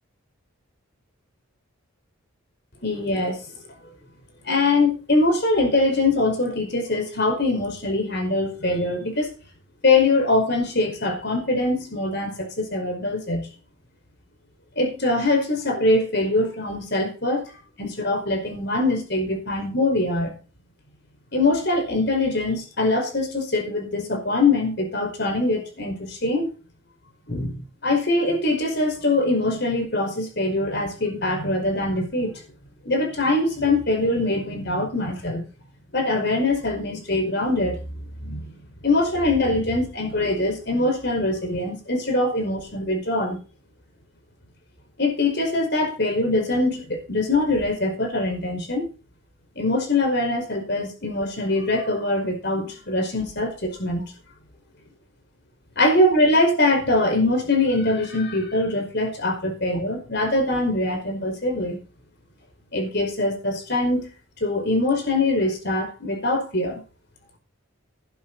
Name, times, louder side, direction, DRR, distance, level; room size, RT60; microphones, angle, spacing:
voice 1, 2.8-3.4 4.4-9.3 9.8-13.5 14.8-17.5 17.8-20.3 21.3-26.5 27.3-32.4 32.8-35.4 35.9-37.8 38.2-38.6 38.8-43.4 45.0-48.9 49.6-54.0 55.8-61.8 62.7-64.1 64.4-66.8, left 2 dB, 50° left, 4 dB, 5.3 m, -23 dB
12.5 x 12.0 x 4.2 m, 0.35 s
head